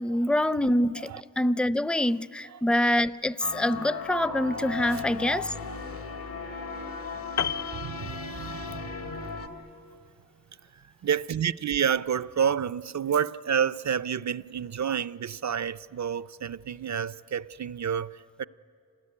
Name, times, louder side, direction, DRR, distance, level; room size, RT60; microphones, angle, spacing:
voice 1, 0.0-5.5 8.0-8.1, left 1 dB, 5° left, 0.5 m, -25 dB
sound 1, 3.4-9.5, left 4 dB, 75° left, 2.0 m, -36 dB
Piano, 7.4-8.8 9.1-9.3, left 8 dB, 50° left, 0.5 m, -33 dB
voice 2, 7.7-9.2 10.7-18.5, right 8 dB, 55° right, 0.5 m, -29 dB
26.0 x 20.0 x 9.8 m
cardioid pair, 50°, 35 cm